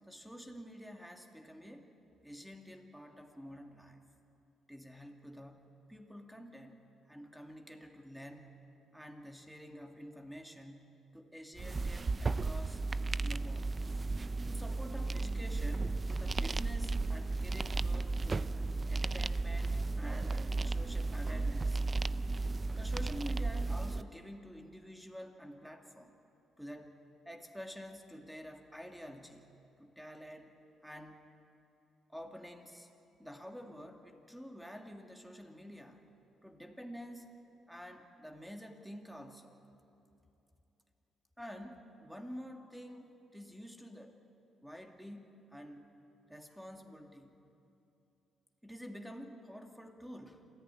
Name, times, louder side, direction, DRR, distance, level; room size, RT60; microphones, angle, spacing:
voice 1, 0.1-1.9 2.2-4.0 4.7-8.6 8.9-12.8 13.2-13.7 14.5-18.6 18.9-21.8 22.8-26.1 26.6-27.0 27.3-29.5 29.8-30.5 30.8-31.3 32.1-32.9 33.2-36.0 36.4-37.3 37.7-39.6 41.4-44.2 44.6-45.9 46.3-47.4 48.6-50.4, equal, ahead, 4 dB, 2.3 m, -49 dB
sound 1, 11.6-24.0, right 3 dB, 30° right, 0.5 m, -34 dB
26.5 x 14.5 x 9.9 m, 2.8 s
cardioid pair, 90°, 0 cm